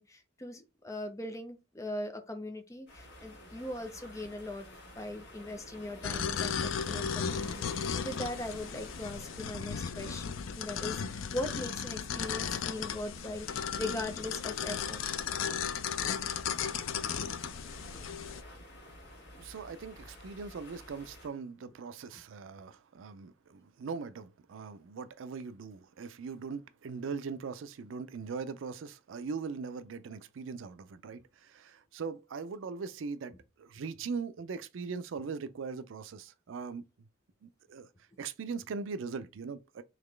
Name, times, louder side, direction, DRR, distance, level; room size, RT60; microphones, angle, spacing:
voice 1, 0.0-4.7 5.0-15.0, left 1 dB, 15° left, 0.6 m, -40 dB
sound 1, 2.9-21.3, left 1 dB, 60° left, 2.1 m, -51 dB
sound 2, 6.0-18.4, left 7 dB, 90° left, 0.4 m, -35 dB
voice 2, 19.4-36.9 37.4-37.9 38.2-39.8, right 5 dB, 80° right, 0.4 m, -40 dB
4.0 x 3.0 x 3.2 m
head